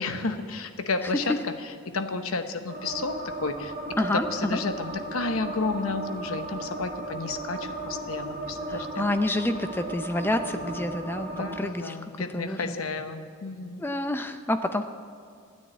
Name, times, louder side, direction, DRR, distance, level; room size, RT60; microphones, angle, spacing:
voice 1, 0.0-1.3 1.9-3.7 4.3-9.1 10.5-10.8 11.3-13.8, left 3 dB, 85° left, 9 dB, 0.9 m, -32 dB
sound 1, 2.7-11.6, right 2 dB, 45° right, 1.9 m, -36 dB
voice 2, 4.0-4.6 8.7-12.0 12.3-12.7 13.8-14.8, left 1 dB, 10° left, 8 dB, 0.5 m, -28 dB
13.0 x 9.6 x 8.5 m, 2.2 s
head